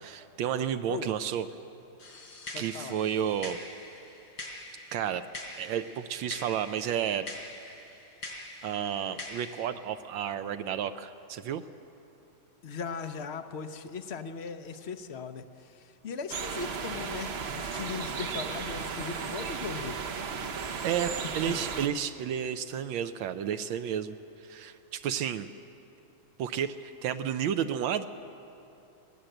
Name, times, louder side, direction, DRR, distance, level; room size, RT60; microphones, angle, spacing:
voice 1, 0.0-1.5 2.6-3.6 4.9-5.2 5.6-7.3 8.6-11.6 20.8-24.2 24.4-25.5 26.4-28.1, right 9 dB, 80° right, 9 dB, 1.4 m, -31 dB
sound 1, 2.0-9.7, left 1 dB, 80° left, 4.3 m, -44 dB
voice 2, 2.5-3.0 12.6-20.0 21.5-21.6, left 5 dB, 60° left, 9 dB, 0.7 m, -38 dB
sound 2, 16.3-21.9, right 5 dB, 50° right, 0.7 m, -35 dB
20.5 x 17.5 x 7.8 m, 2.8 s
omnidirectional pair, 2.1 m